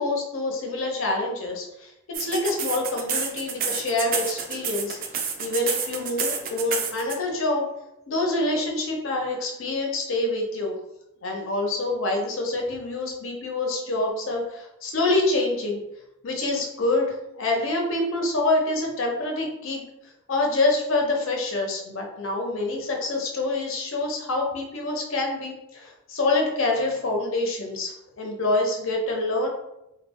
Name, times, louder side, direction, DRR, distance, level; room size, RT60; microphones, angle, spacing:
voice 1, 0.0-1.9 2.2-5.0 5.4-7.7 8.1-10.7 11.2-15.8 16.2-19.8 20.3-29.5, left 2 dB, 75° left, 0 dB, 0.6 m, -26 dB
sound 1, 2.1-7.2, right 6 dB, 45° right, 0.3 m, -28 dB
2.2 x 2.0 x 3.5 m, 0.87 s
head